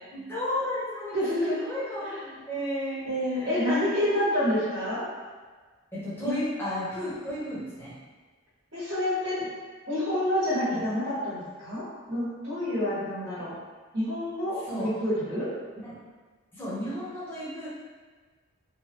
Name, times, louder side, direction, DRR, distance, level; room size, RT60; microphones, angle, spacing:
voice 1, 0.1-2.1 2.5-3.7 4.0-4.3 5.9-7.9 10.7-10.9 14.6-14.9 15.8-16.0 16.5-17.7, equal, 10° left, -10 dB, 0.8 m, -33 dB
voice 2, 1.1-1.6 2.3-2.4 3.0-5.1 6.2-6.3 8.7-9.5 9.9-13.5 13.9-15.5, left 1 dB, 60° right, -12 dB, 1.2 m, -28 dB
3.2 x 2.1 x 2.9 m, 1.4 s
head